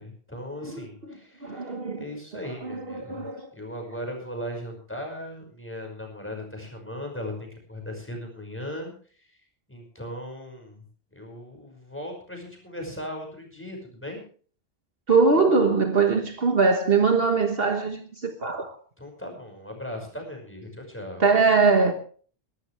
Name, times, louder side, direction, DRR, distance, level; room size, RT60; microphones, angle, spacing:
voice 1, 0.0-3.2 3.5-8.9 9.2-9.3 9.7-10.8 11.1-14.2 19.0-21.2, left 1 dB, 10° left, 5.5 m, -38 dB
voice 2, 1.4-2.0 2.6-3.5 15.1-18.8 21.2-21.9, right 4 dB, 60° right, 1.5 m, -22 dB
21.5 x 13.0 x 3.3 m
omnidirectional pair, 1.2 m